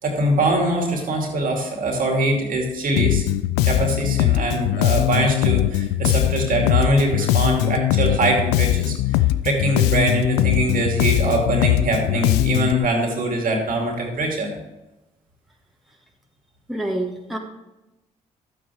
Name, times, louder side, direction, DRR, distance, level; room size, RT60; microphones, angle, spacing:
voice 1, 0.0-3.2 3.6-14.5, right 2 dB, 55° right, 2 dB, 2.5 m, -23 dB
Bass guitar, 3.0-12.8, left 15 dB, 70° left, 0.4 m, -20 dB
voice 2, 16.7-17.4, right 1 dB, ahead, 0 dB, 1.9 m, -27 dB
12.0 x 8.7 x 3.5 m, 0.99 s
hypercardioid pair, 45°, 17 cm